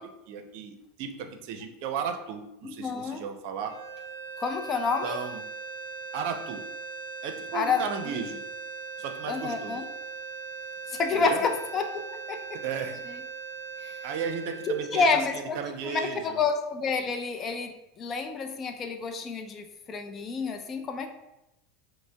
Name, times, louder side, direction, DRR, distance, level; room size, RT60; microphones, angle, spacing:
voice 1, 0.0-3.7 5.0-5.4 6.1-6.6 7.2-8.4 9.0-9.8 11.1-11.4 12.5-13.0 14.0-16.4, right 6 dB, 65° right, 7 dB, 0.5 m, -35 dB
voice 2, 2.6-3.2 4.4-5.2 7.5-8.2 9.3-9.8 10.9-12.4 12.7-12.9 13.8-14.0 14.7-15.6 15.8-21.1, left 4 dB, 35° left, 5 dB, 0.5 m, -29 dB
sound 1, 3.6-15.9, right 5 dB, 65° left, 0.7 m, -40 dB
5.0 x 2.0 x 3.4 m, 0.92 s
supercardioid pair, 110°, 0 cm